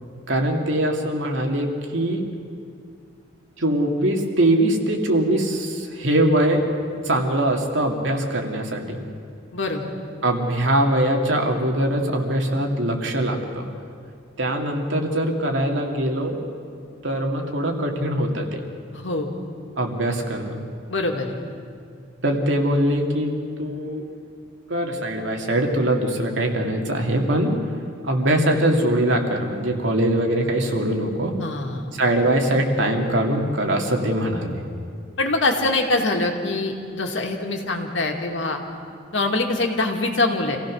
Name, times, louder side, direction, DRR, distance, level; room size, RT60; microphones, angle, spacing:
voice 1, 0.3-2.3 3.6-6.7 7.0-9.0 10.2-13.7 14.4-16.4 17.0-18.6 19.8-20.6 22.2-23.3 23.6-24.1 24.7-27.6 28.0-31.4 32.0-34.6, right 1 dB, 85° right, 2 dB, 2.4 m, -22 dB
voice 2, 9.5-9.9 18.9-19.3 20.9-21.3 31.4-31.9 35.2-38.6 39.1-40.6, left 2 dB, 85° left, 2 dB, 2.2 m, -24 dB
26.5 x 16.0 x 6.4 m, 2.3 s
head